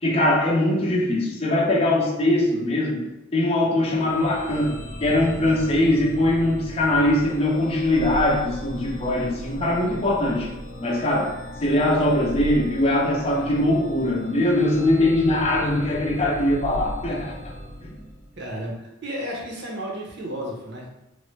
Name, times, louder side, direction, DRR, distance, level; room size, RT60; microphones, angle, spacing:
voice 1, 0.0-3.1 3.3-10.5 10.8-11.3 11.6-17.3 17.8-18.0, left 1 dB, 30° left, -2 dB, 0.5 m, -21 dB
sound 1, 3.8-18.6, equal, ahead, 0.8 m, -37 dB
voice 2, 18.4-20.9, equal, 55° right, -2 dB, 0.7 m, -33 dB
3.1 x 2.1 x 3.1 m, 0.90 s
head